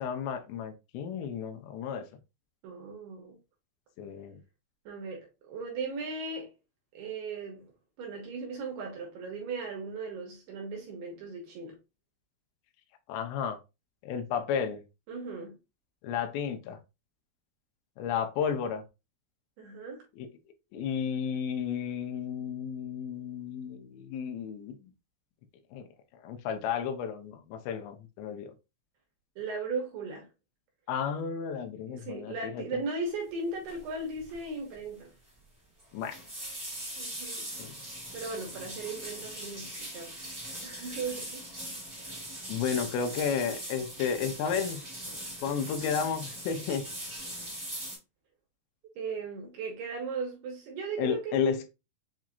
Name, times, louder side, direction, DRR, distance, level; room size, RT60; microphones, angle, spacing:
voice 1, 0.0-2.1 4.0-4.4 13.1-13.6 14.0-14.8 16.0-16.8 18.0-18.8 20.2-20.3 20.7-24.9 25.7-25.9 26.2-28.5 30.9-32.8 35.9-36.2 37.6-37.8 42.5-44.8 45.4-46.9 51.0-51.7, left 7 dB, 80° left, 2.7 m, -32 dB
voice 2, 2.6-3.4 4.9-6.5 6.9-7.7 8.0-11.8 15.1-15.6 19.6-20.1 29.4-30.3 31.9-35.1 37.0-37.5 38.1-40.2 40.4-41.4 49.0-51.4, right 4 dB, 75° right, 2.6 m, -37 dB
sound 1, 33.7-33.9 34.2-34.5 34.8-34.9 35.8-48.0, right 1 dB, 25° right, 0.8 m, -41 dB
7.4 x 2.7 x 2.4 m
omnidirectional pair, 5.4 m